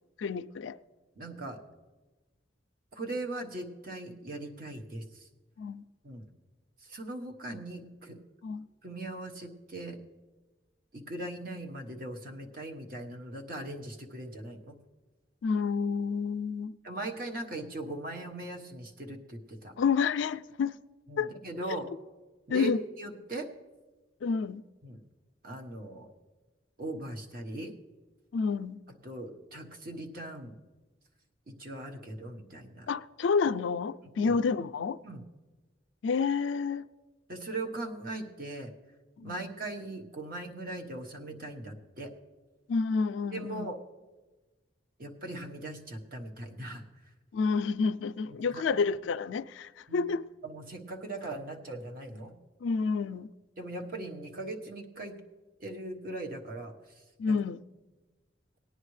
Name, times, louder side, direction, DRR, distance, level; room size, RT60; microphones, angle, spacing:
voice 1, 0.2-0.8 5.6-5.8 8.4-8.7 15.4-16.8 19.8-20.8 21.2-21.3 22.5-22.8 24.2-24.6 28.3-28.8 32.9-35.0 36.0-36.8 39.2-39.4 42.7-43.7 47.3-50.3 52.6-53.3 57.2-57.6, left 5 dB, 85° left, 0.4 m, -29 dB
voice 2, 1.2-1.6 2.9-5.3 6.0-6.3 6.8-8.2 8.8-10.0 10.9-14.8 16.8-19.7 21.1-21.9 22.5-22.7 23.0-23.5 24.8-25.0 25.4-26.1 26.8-27.7 28.9-30.6 31.5-32.9 34.0-34.3 35.0-35.2 37.3-38.7 39.2-42.1 43.3-43.8 45.0-47.1 48.3-48.6 49.9-50.1 50.4-52.3 53.6-55.2 55.6-57.4, right 2 dB, 50° right, 1.2 m, -40 dB
18.5 x 9.9 x 3.2 m
head